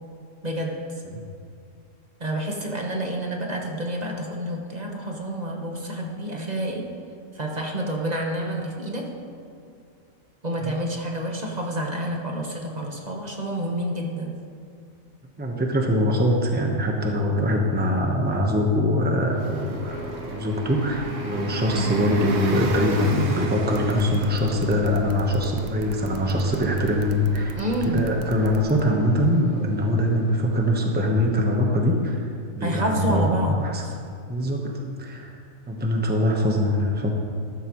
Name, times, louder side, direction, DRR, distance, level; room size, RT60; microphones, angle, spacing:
voice 1, 0.4-0.7 2.2-6.8 7.3-9.1 10.4-14.3 27.6-28.1 32.6-33.9, equal, 30° right, 0 dB, 1.3 m, -28 dB
voice 2, 15.4-27.6 27.8-32.3 32.5-33.8 34.3-35.4 35.7-37.1, equal, 10° right, 1 dB, 1.0 m, -23 dB
Bus, 19.3-31.6, right 2 dB, 90° right, 1.5 m, -36 dB
Wind instrument woodwind instrument, 19.8-24.9, left 4 dB, 55° left, 1.1 m, -38 dB
sound 1, 23.7-28.8, right 6 dB, 65° right, 1.0 m, -38 dB
13.5 x 13.0 x 3.1 m, 2.4 s
omnidirectional pair, 1.4 m